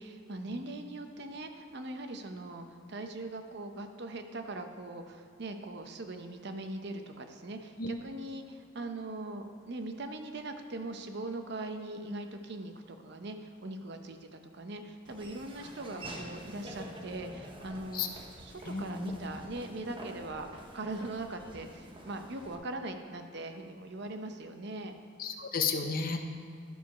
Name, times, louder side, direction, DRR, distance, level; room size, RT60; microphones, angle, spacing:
voice 1, 0.0-24.9, right 2 dB, 60° right, 6 dB, 0.7 m, -41 dB
Laughter / Walk footsteps, 15.1-22.6, right 1 dB, 25° right, 0.9 m, -47 dB
voice 2, 18.6-19.2 25.2-26.2, left 5 dB, 45° left, 5 dB, 0.7 m, -33 dB
12.0 x 4.8 x 5.6 m, 2.3 s
head